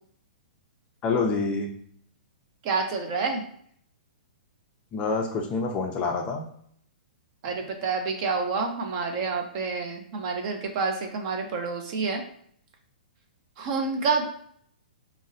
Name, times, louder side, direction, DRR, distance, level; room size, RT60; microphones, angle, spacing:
voice 1, 1.0-1.7 4.9-6.5, left 4 dB, 20° left, 1 dB, 0.4 m, -27 dB
voice 2, 2.6-3.4 7.4-12.2 13.6-14.2, right 4 dB, 40° right, 4 dB, 0.5 m, -28 dB
3.7 x 2.0 x 2.6 m, 0.63 s
hypercardioid pair, 150°, 5 cm